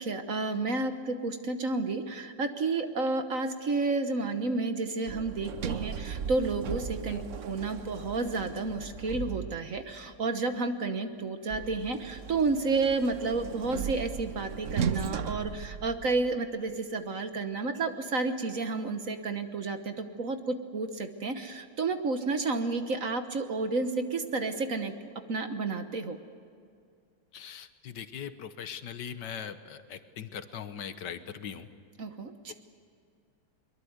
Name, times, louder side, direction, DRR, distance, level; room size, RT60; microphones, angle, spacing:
voice 1, 0.0-26.2 32.0-32.5, right 3 dB, 45° right, 8 dB, 1.3 m, -31 dB
Sliding door, 5.1-9.9 11.5-16.4, right 7 dB, 70° right, 0.7 m, -37 dB
voice 2, 27.3-31.7, left 8 dB, 60° left, 11 dB, 1.6 m, -40 dB
23.0 x 22.5 x 8.0 m, 2.3 s
omnidirectional pair, 2.3 m